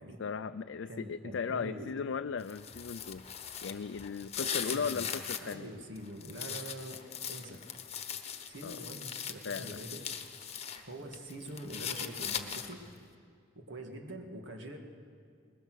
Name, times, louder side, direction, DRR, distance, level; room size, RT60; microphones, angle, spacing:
voice 1, 0.2-3.2 3.6-5.7 8.6-8.8 9.4-9.8, left 6 dB, 70° left, 10 dB, 0.4 m, -37 dB
voice 2, 0.9-1.9 4.4-5.0 5.4-7.6 8.5-10.0 10.8-12.8 13.6-14.8, right 1 dB, 70° right, 3 dB, 2.1 m, -44 dB
sound 1, 2.4-5.5 6.0-10.8 11.1-12.9, left 8 dB, 35° left, 1.1 m, -40 dB
21.5 x 20.5 x 6.3 m, 2.3 s
head